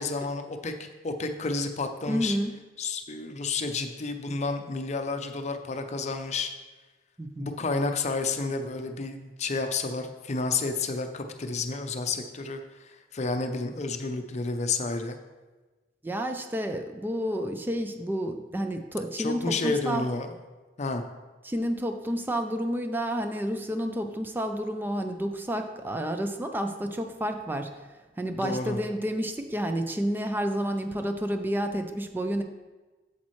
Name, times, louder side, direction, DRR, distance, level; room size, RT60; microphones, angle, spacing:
voice 1, 0.0-2.4 2.8-6.5 7.4-15.2 19.2-20.3 20.8-21.0 28.4-28.8, left 3 dB, 40° left, 6 dB, 0.6 m, -30 dB
voice 2, 2.1-2.5 7.2-7.5 16.0-20.1 21.4-27.9 28.2-32.4, equal, 10° right, 6 dB, 0.4 m, -30 dB
8.3 x 7.3 x 3.1 m, 1.2 s
head